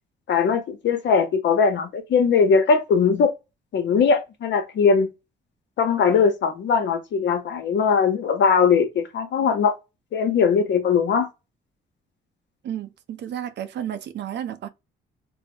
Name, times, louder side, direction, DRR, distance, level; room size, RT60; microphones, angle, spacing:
voice 1, 0.3-3.3 3.7-5.1 5.8-9.7 10.1-11.3, left 6 dB, 65° left, 0.8 m, -20 dB
voice 2, 12.6-14.7, right 10 dB, 60° right, 0.5 m, -32 dB
3.5 x 2.0 x 3.5 m
cardioid pair, 90°, 20 cm